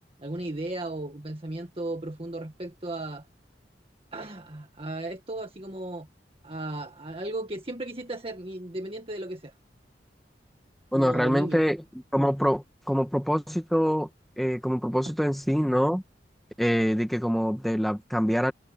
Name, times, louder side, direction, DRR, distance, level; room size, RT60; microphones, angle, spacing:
voice 1, 0.2-3.2 4.1-6.1 6.4-9.5 10.9-11.7, right 1 dB, 30° right, 1.7 m, -35 dB
voice 2, 10.9-11.8 12.1-14.1 14.4-16.0 16.6-18.5, equal, ahead, 1.7 m, -25 dB
head